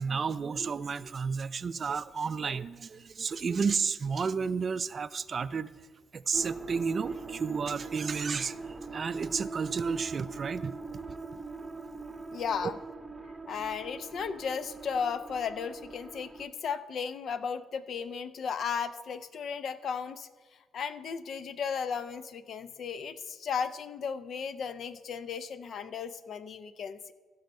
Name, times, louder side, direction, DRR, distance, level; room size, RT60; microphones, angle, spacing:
voice 1, 0.0-5.7 6.1-8.6 8.9-10.7, right 5 dB, 40° right, 14 dB, 0.4 m, -32 dB
Seeking the unknown, 6.3-16.5, right 4 dB, 20° right, 0.8 m, -41 dB
voice 2, 12.3-12.8 13.5-20.3 20.7-27.1, left 6 dB, 60° left, 13 dB, 0.6 m, -35 dB
16.0 x 5.6 x 5.3 m, 1.4 s
cardioid pair, 90°, 0 cm